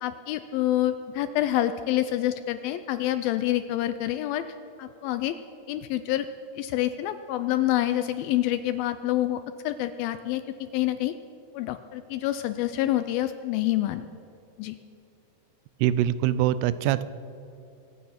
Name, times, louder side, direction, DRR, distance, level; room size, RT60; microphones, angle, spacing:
voice 1, 0.0-4.5 4.8-5.4 5.7-6.3 6.6-11.1 11.5-14.1 14.6-14.8, left 13 dB, 80° left, 11 dB, 2.2 m, -27 dB
voice 2, 15.8-17.0, right 12 dB, 90° right, 15 dB, 2.7 m, -23 dB
24.0 x 9.1 x 5.8 m, 2.7 s
omnidirectional pair, 4.6 m